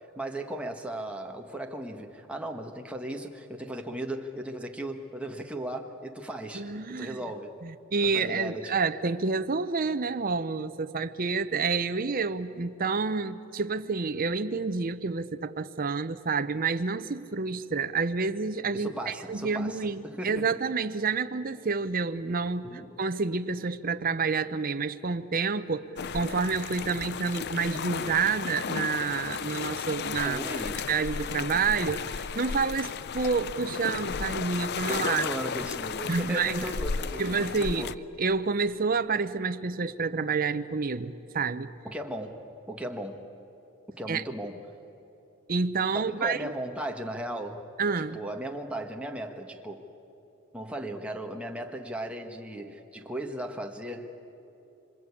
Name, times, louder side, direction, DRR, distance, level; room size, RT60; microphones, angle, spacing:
voice 1, 0.1-7.5 8.0-8.8 18.7-20.4 22.6-23.0 30.2-30.9 34.9-37.2 37.6-38.0 41.8-43.2 43.9-44.6 45.9-47.7 48.1-49.8 50.5-54.1, right 1 dB, 5° right, 2 dB, 1.6 m, -36 dB
voice 2, 6.5-7.2 7.6-30.4 30.9-35.3 36.1-36.6 37.2-37.9 38.2-41.7 44.1-44.2 45.5-46.4 47.8-48.2, right 4 dB, 40° right, 9 dB, 0.7 m, -29 dB
sound 1, 26.0-37.9, left 6 dB, 50° left, 0.5 m, -34 dB
26.5 x 25.5 x 8.5 m, 3.0 s
head